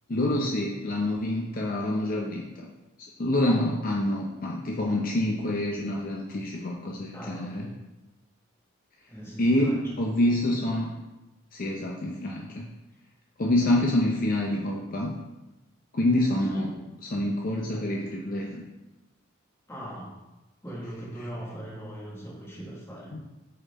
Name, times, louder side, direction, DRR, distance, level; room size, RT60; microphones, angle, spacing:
voice 1, 0.1-2.7 3.2-7.7 9.4-10.9 11.5-12.7 13.4-15.1 15.9-16.7 17.1-18.6 21.2-21.3 23.1-23.2, left 1 dB, 45° left, -1 dB, 0.6 m, -27 dB
voice 2, 7.1-7.7 9.1-9.8 10.1-10.2 13.6-13.7 16.5-16.8 19.7-20.1 20.6-23.2, right 1 dB, 15° left, -4 dB, 1.3 m, -40 dB
5.3 x 4.3 x 4.2 m, 1.0 s
head